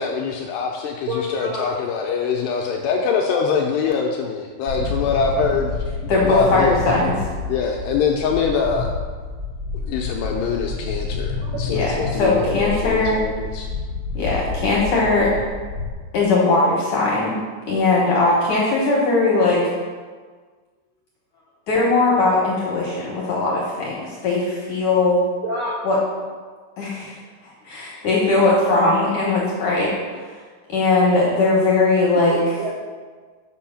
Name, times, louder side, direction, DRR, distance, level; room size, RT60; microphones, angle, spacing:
voice 1, 0.0-5.7 6.0-6.8 7.5-8.9 9.8-13.7, left 6 dB, 85° left, 0 dB, 2.5 m, -24 dB
voice 2, 1.1-1.6 3.3-3.4 11.4-11.6 12.1-12.2 25.4-25.8 28.4-29.0 32.3-32.7, right 1 dB, 75° right, -4 dB, 2.0 m, -28 dB
sound 1, 4.7-15.9, left 3 dB, 35° right, 1.4 m, -29 dB
voice 3, 6.1-7.1 11.7-13.2 14.1-15.3 16.1-17.4 17.7-19.6 21.7-25.2 25.8-26.0 26.8-27.2 27.4-29.9 30.7-32.4, left 3 dB, 70° left, -5 dB, 2.0 m, -19 dB
8.1 x 6.2 x 5.8 m, 1.5 s
omnidirectional pair, 5.5 m